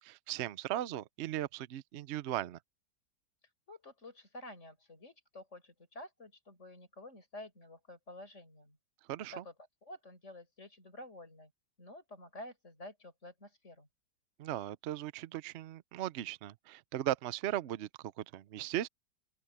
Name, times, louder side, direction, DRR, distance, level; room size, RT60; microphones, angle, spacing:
voice 1, 0.0-2.6 9.1-9.4 14.4-18.9, right 13 dB, 85° right, 0.5 m, -37 dB
voice 2, 3.7-8.8 9.3-9.5 9.8-11.5 11.8-13.9, left 1 dB, 40° left, 6.3 m, -50 dB
open air
omnidirectional pair, 2.0 m